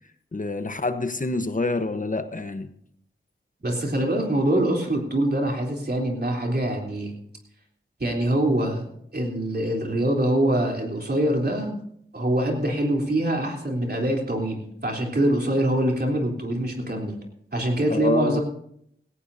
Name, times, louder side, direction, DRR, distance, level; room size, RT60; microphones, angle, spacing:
voice 1, 0.3-2.7 17.9-18.4, left 2 dB, 40° left, 10 dB, 1.1 m, -27 dB
voice 2, 3.6-7.1 8.0-8.9 9.1-11.8 12.1-17.2 17.5-18.4, right 1 dB, 50° right, 0 dB, 3.4 m, -24 dB
17.5 x 16.5 x 2.7 m, 0.71 s
wide cardioid pair, 50°, 21 cm